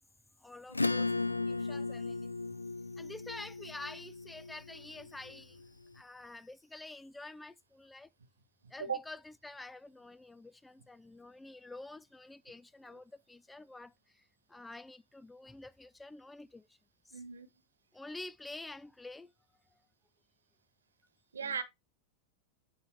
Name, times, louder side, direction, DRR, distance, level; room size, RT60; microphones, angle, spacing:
voice 1, 0.4-1.1 1.5-2.3 2.9-8.1 8.7-9.2 9.4-14.2 14.5-16.7 17.1-17.2 17.9-19.3 21.4-21.5, left 2 dB, 5° left, 0.3 m, -48 dB
Acoustic guitar / Strum, 0.7-5.7, left 3 dB, 80° left, 0.4 m, -36 dB
voice 2, 17.1-17.5 21.3-21.6, right 6 dB, 70° right, 1.4 m, -36 dB
9.4 x 3.8 x 4.3 m
figure-of-eight pair, 90°, 0 cm